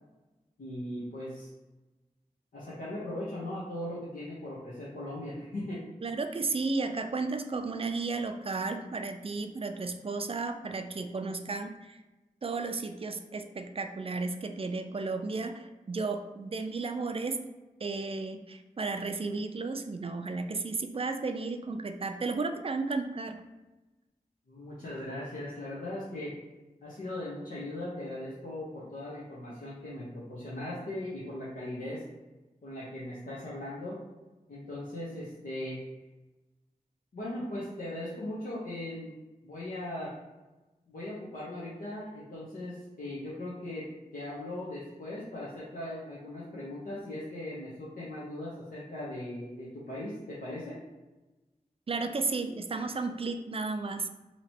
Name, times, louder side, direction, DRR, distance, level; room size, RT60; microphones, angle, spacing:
voice 1, 0.6-1.5 2.5-5.8 24.5-26.3 26.8-32.0 32.6-34.0 34.5-35.8 37.1-39.1 39.4-40.1 40.9-43.8 44.1-50.8, left 1 dB, 85° left, -8 dB, 0.9 m, -39 dB
voice 2, 6.0-12.0 12.4-17.4 17.8-23.4 51.9-54.1, right 3 dB, 40° right, 7 dB, 0.4 m, -33 dB
2.9 x 2.9 x 4.3 m, 1.1 s
wide cardioid pair, 90°, 14 cm